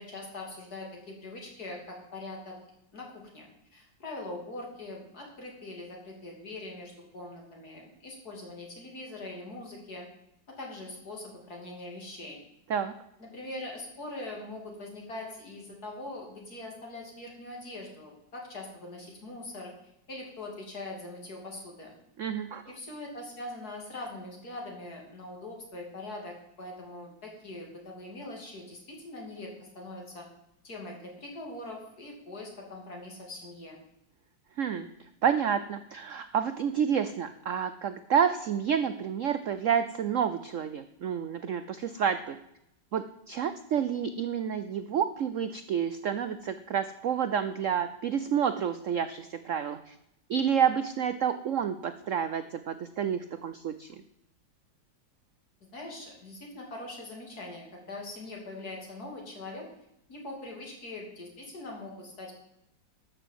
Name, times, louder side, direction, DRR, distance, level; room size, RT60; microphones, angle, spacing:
voice 1, 0.0-2.5 2.9-3.5 3.7-10.1 10.5-12.4 13.2-21.9 22.7-30.3 30.6-33.8 55.7-59.7 60.1-62.4, left 2 dB, 50° left, 0 dB, 3.4 m, -42 dB
voice 2, 22.2-22.6 34.6-42.4 42.9-50.0 50.3-54.0, right 8 dB, 75° right, 11 dB, 0.7 m, -29 dB
12.5 x 6.9 x 7.6 m, 0.81 s
omnidirectional pair, 2.1 m